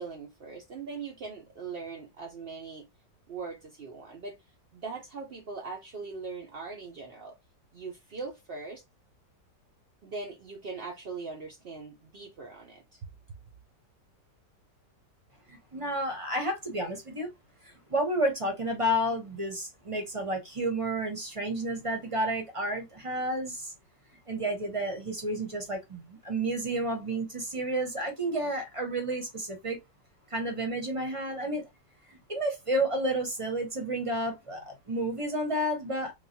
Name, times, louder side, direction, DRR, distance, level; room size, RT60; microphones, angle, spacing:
voice 1, 0.0-2.9 3.3-4.4 4.7-7.3 7.7-8.8 10.0-13.1, right 4 dB, 70° right, 0.5 m, -40 dB
voice 2, 15.5-17.3 17.9-23.7 24.3-29.8 30.3-31.7 32.1-36.1, right 1 dB, 30° right, 0.6 m, -31 dB
3.8 x 2.3 x 2.7 m
omnidirectional pair, 1.9 m